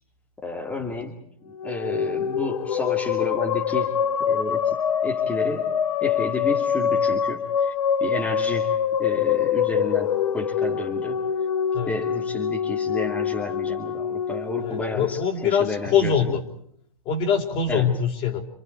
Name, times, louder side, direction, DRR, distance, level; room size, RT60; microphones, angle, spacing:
voice 1, 0.4-1.2 1.5-3.9 4.2-4.7 5.0-7.7 8.0-11.2 11.9-16.1 17.7-17.9, left 2 dB, 10° left, -1 dB, 2.4 m, -31 dB
sound 1, 1.5-15.9, left 8 dB, 70° left, 2.0 m, -25 dB
voice 2, 14.6-16.4 17.1-18.4, left 7 dB, 30° left, 5 dB, 3.9 m, -23 dB
30.0 x 28.0 x 4.6 m, 0.66 s
hypercardioid pair, 140°, 18 cm